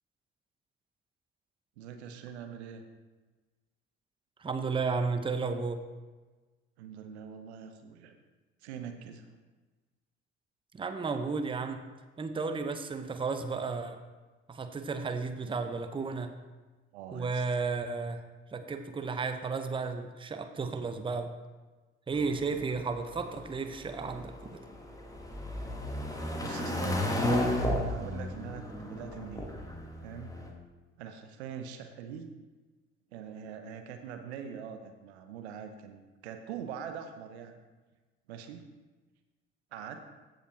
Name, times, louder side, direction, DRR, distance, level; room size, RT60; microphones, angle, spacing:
voice 1, 1.8-2.8 6.8-8.2 8.6-9.3 16.9-17.4 22.1-22.7 26.4-29.5 30.0-30.4 31.0-32.3 33.1-37.6 38.3-38.7 39.7-40.0, right 7 dB, 70° right, 7 dB, 0.7 m, -43 dB
voice 2, 4.4-5.8 10.7-11.8 12.2-14.0 14.5-16.3 17.1-18.2 18.5-21.3 22.1-24.6, right 4 dB, 15° right, 8 dB, 0.7 m, -33 dB
sound 1, 22.2-30.5, left 1 dB, 10° left, 1.3 m, -34 dB
14.5 x 5.1 x 3.0 m, 1.3 s
figure-of-eight pair, 50°, 34 cm